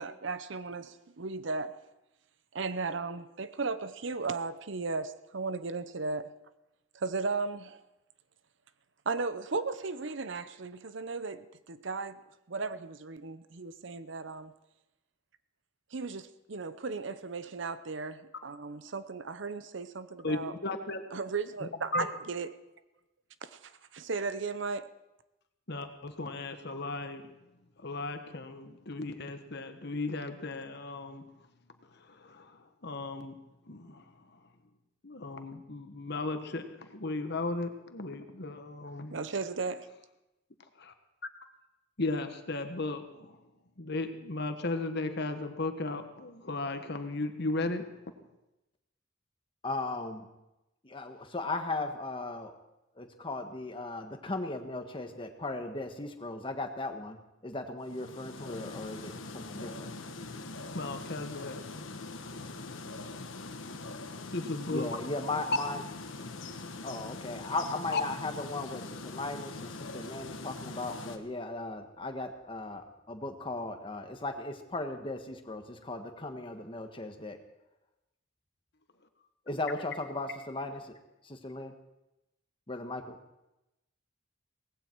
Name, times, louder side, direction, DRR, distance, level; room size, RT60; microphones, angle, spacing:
voice 1, 0.0-1.8 2.5-6.3 6.9-7.8 9.1-12.2 12.5-14.5 15.9-20.5 21.1-22.6 23.4-24.9 39.1-39.9, right 4 dB, 65° right, 13 dB, 0.8 m, -36 dB
voice 2, 20.2-21.0 21.9-22.1 25.7-27.2 27.8-31.2 32.2-32.5 32.8-33.4 33.7-34.0 35.0-39.1 40.8-40.9 42.0-43.3 43.8-47.9 60.7-61.8 64.3-64.9 67.9-68.0, left 2 dB, 60° left, 7 dB, 1.4 m, -35 dB
voice 3, 49.6-50.3 50.8-52.5 52.9-57.2 57.4-59.9 64.7-65.8 66.8-77.4 79.5-81.0 81.2-81.7 82.7-83.2, left 2 dB, 25° left, 5 dB, 1.4 m, -37 dB
sound 1, 57.8-71.2, left 3 dB, 85° left, 1.3 m, -42 dB
18.0 x 16.0 x 4.6 m, 0.95 s
head